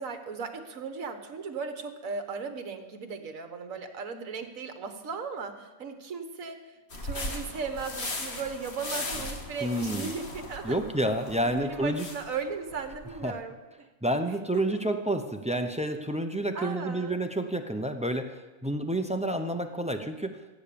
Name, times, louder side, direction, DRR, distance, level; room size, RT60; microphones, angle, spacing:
voice 1, 0.0-10.9 11.4-13.6 14.5-14.9 16.5-17.2, right 5 dB, 65° right, 7 dB, 1.7 m, -37 dB
sound 1, 6.9-13.3, left 2 dB, 45° left, 1.8 m, -38 dB
voice 2, 9.6-10.1 10.6-12.1 13.2-13.4 14.0-20.4, right 1 dB, 10° right, 6 dB, 0.4 m, -29 dB
15.5 x 8.8 x 6.9 m, 1.2 s
omnidirectional pair, 1.6 m